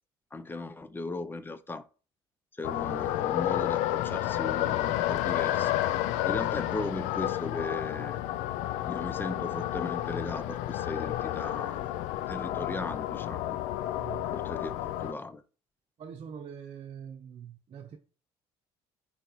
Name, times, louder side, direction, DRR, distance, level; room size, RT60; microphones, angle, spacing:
voice 1, 0.3-1.8 2.6-5.7 6.2-8.2 8.9-12.0 12.3-13.6 14.3-15.4, left 2 dB, 15° left, 0.7 m, -37 dB
sound 1, 2.6-15.1, left 13 dB, 80° left, 0.4 m, -31 dB
voice 2, 13.9-14.3 16.0-18.0, right 8 dB, 50° right, 0.9 m, -44 dB
9.2 x 4.2 x 3.1 m
supercardioid pair, 80°, 12 cm